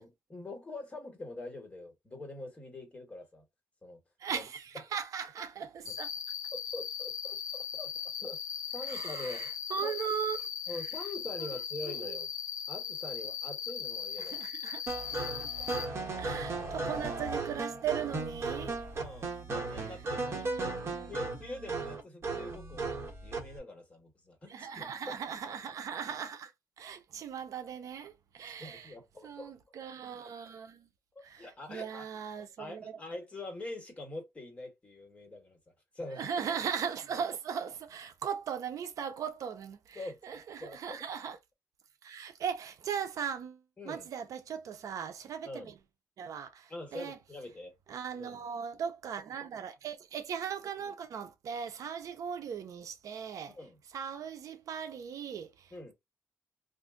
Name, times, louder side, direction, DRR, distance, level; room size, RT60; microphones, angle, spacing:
voice 1, 0.0-3.4 3.8-4.0 4.3-4.4 5.9-6.0 6.5-8.4 8.7-9.5 9.8-9.9 10.7-12.3 12.7-14.4 15.0-15.7 18.9-20.5 21.1-25.2 28.6-29.5 31.1-32.1 32.6-35.6 35.9-36.3 39.9-41.0 43.8-44.1 45.4-45.7 46.7-47.7 48.2-48.5 53.5-53.7 55.7-55.9, left 2 dB, 20° left, 1.4 m, -44 dB
voice 2, 4.2-6.1 8.9-10.8 11.8-12.2 14.2-14.8 16.2-18.8 19.7-20.0 20.3-21.3 24.5-26.5 26.8-28.9 29.2-30.9 31.2-33.0 36.1-41.4 42.0-45.7 46.2-47.2 47.9-53.6 53.9-55.7, right 7 dB, 70° right, 0.5 m, -38 dB
Cricket, 5.9-15.9, left 8 dB, 65° left, 0.6 m, -38 dB
sound 1, 14.9-23.6, right 3 dB, 45° right, 1.3 m, -36 dB
2.5 x 2.4 x 3.7 m
cardioid pair, 110°, 6 cm